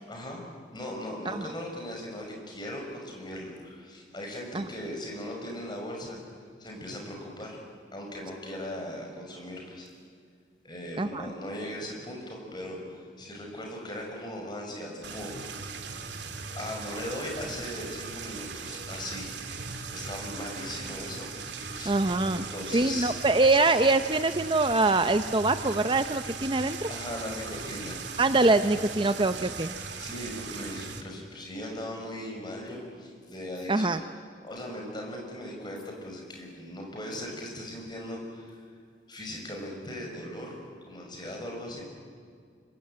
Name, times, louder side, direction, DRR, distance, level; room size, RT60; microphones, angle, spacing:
voice 1, 0.1-0.4 0.7-6.2 6.6-7.6 7.9-9.9 10.6-15.4 16.5-19.4 19.9-21.3 21.7-21.9 22.3-23.1 26.9-28.0 30.0-34.1 34.4-38.6 39.1-41.8, left 1 dB, 25° left, 0 dB, 6.1 m, -38 dB
voice 2, 11.0-11.3 21.9-26.9 28.2-29.7 33.7-34.0, right 2 dB, 25° right, 10 dB, 0.7 m, -24 dB
sound 1, 15.0-31.0, right 5 dB, 75° right, 2.4 m, -39 dB
26.0 x 24.0 x 9.0 m, 2.1 s
head